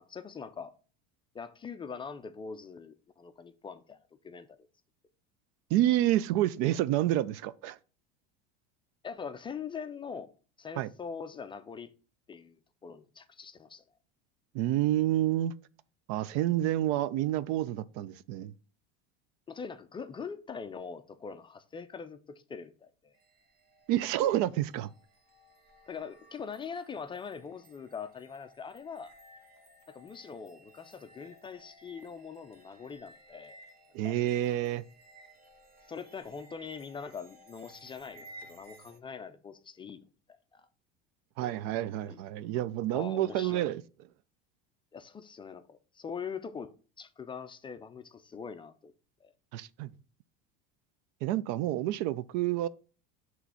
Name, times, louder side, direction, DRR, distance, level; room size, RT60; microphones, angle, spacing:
voice 1, 0.1-0.7 1.3-4.6 9.0-10.3 10.6-11.9 12.3-13.8 19.5-22.2 22.5-23.1 25.9-29.1 29.9-33.6 34.0-34.2 35.9-40.7 41.4-41.5 42.1-42.2 42.9-43.7 44.9-46.7 47.0-48.9 49.2-49.3, left 6 dB, 15° left, 0.4 m, -43 dB
voice 2, 5.7-7.8 10.8-10.9 14.5-15.5 16.1-18.5 23.9-24.9 33.9-34.8 41.4-43.8 49.5-49.9 51.2-52.7, right 13 dB, 60° right, 0.5 m, -29 dB
sound 1, 23.1-39.0, right 1 dB, 30° right, 1.1 m, -57 dB
5.8 x 3.1 x 5.6 m
supercardioid pair, 125°, 29 cm